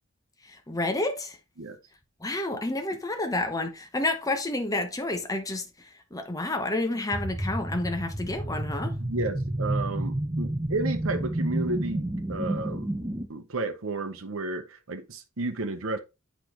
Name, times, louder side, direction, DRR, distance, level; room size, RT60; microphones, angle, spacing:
voice 1, 0.4-1.4 2.2-9.0, left 2 dB, 15° left, 0.9 m, -30 dB
sound 1, 7.1-13.3, right 1 dB, 15° right, 0.6 m, -30 dB
voice 2, 9.0-12.9 13.3-16.0, right 2 dB, 65° right, 0.9 m, -32 dB
8.3 x 5.2 x 3.0 m
head